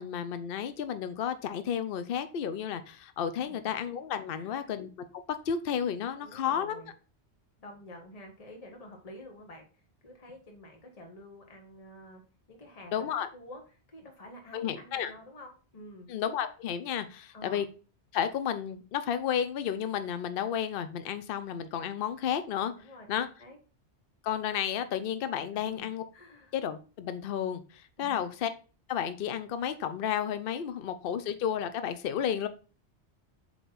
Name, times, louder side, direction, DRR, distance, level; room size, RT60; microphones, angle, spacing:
voice 1, 0.0-6.8 12.9-13.3 14.5-15.1 16.1-17.6 18.1-22.7 23.1-23.3 24.2-26.0 26.5-28.5 28.9-32.5, left 9 dB, 60° left, 11 dB, 0.8 m, -32 dB
voice 2, 4.3-4.7 6.2-6.9 7.6-9.7 10.0-12.2 12.5-13.1 13.3-13.6 13.9-16.1 17.3-17.6 22.7-23.6 25.5-26.5 28.0-28.4, left 1 dB, 35° left, 2 dB, 1.3 m, -49 dB
7.8 x 3.3 x 4.0 m, 0.36 s
omnidirectional pair, 1.2 m